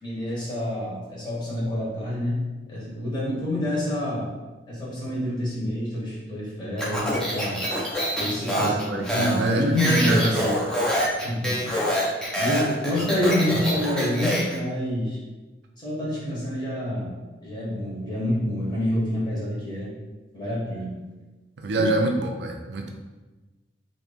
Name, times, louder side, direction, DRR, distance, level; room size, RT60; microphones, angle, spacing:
voice 1, 0.0-2.4 2.7-4.3 4.7-7.6 8.2-8.8 9.1-10.5 11.2-11.7 12.3-15.2 15.8-19.9 20.3-20.9 21.7-21.9, left 1 dB, 25° left, -7 dB, 1.1 m, -27 dB
Speech, 6.8-14.6, equal, 5° left, 0.7 m, -26 dB
voice 2, 8.5-10.7 21.6-22.9, right 2 dB, 70° right, 2 dB, 0.4 m, -26 dB
3.0 x 2.6 x 3.5 m, 1.2 s
head